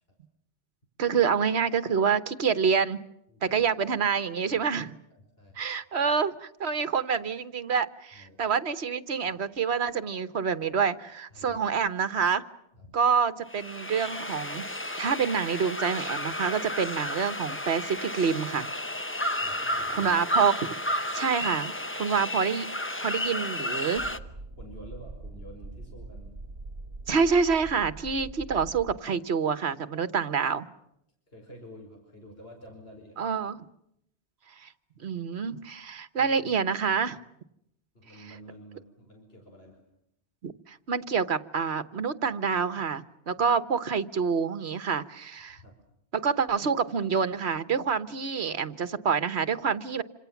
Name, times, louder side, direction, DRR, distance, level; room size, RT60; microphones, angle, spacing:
voice 1, 1.0-3.0 3.4-5.0 5.6-12.4 12.9-14.7 15.0-18.7 19.9-20.7 21.1-21.7 22.0-22.7 23.0-24.0 27.1-30.6 33.2-33.6 34.6-34.7 35.0-37.2 40.4-45.6 46.1-50.0, right 6 dB, 70° right, 13 dB, 1.5 m, -27 dB
voice 2, 3.3-3.6 5.1-5.6 8.1-8.4 11.3-11.7 12.7-13.0 19.4-20.1 23.4-23.5 23.9-24.2 24.6-26.4 29.9-30.1 31.3-33.3 36.2-36.6 37.9-39.8 43.4-43.5 45.6-45.8, equal, 60° left, 2 dB, 5.3 m, -49 dB
sound 1, 13.5-24.2, left 1 dB, 10° left, 0.9 m, -32 dB
sound 2, 24.0-29.0, right 2 dB, 50° right, 2.3 m, -43 dB
27.0 x 26.5 x 7.2 m, 0.77 s
omnidirectional pair, 1.1 m